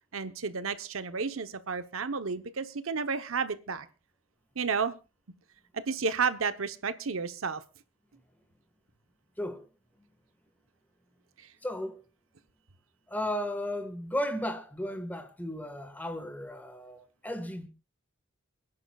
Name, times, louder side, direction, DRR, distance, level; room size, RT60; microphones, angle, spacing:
voice 1, 0.1-3.9 4.6-4.9 5.7-7.6, right 5 dB, 85° right, 0.9 m, -31 dB
voice 2, 11.6-12.0 13.1-17.7, left 1 dB, 10° left, 1.6 m, -35 dB
28.5 x 10.5 x 2.4 m
head